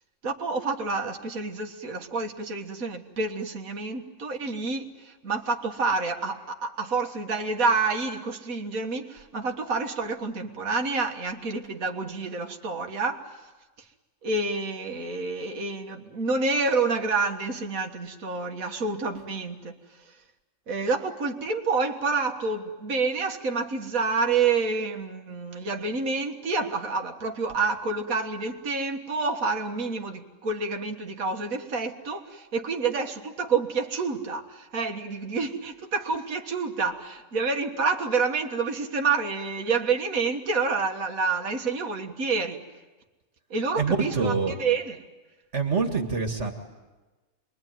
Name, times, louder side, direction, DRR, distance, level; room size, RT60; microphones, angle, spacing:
voice 1, 0.2-13.4 14.2-19.8 20.7-42.6 43.5-44.3 44.6-45.0, right 4 dB, 85° right, 3 dB, 2.0 m, -28 dB
voice 2, 43.8-44.5 45.5-46.5, right 5 dB, 55° right, 4 dB, 2.3 m, -25 dB
28.0 x 22.5 x 9.3 m, 1.2 s
omnidirectional pair, 1.4 m